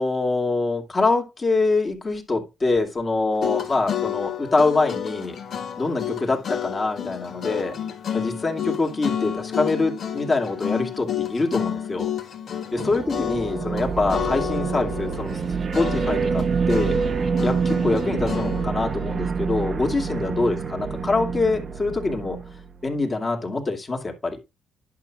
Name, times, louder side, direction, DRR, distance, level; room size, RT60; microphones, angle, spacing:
voice 1, 0.0-5.4 5.8-7.7 8.1-12.1 12.9-15.4 15.7-17.0 17.4-22.4 22.8-24.4, left 3 dB, 30° left, 2.4 m, -24 dB
sound 1, 3.3-13.8 14.1-15.5 15.7-18.6, left 9 dB, 60° left, 1.7 m, -30 dB
sound 2, 12.8-23.0, right 5 dB, 45° right, 0.8 m, -27 dB
11.0 x 5.8 x 2.3 m
cardioid pair, 90°, 0 cm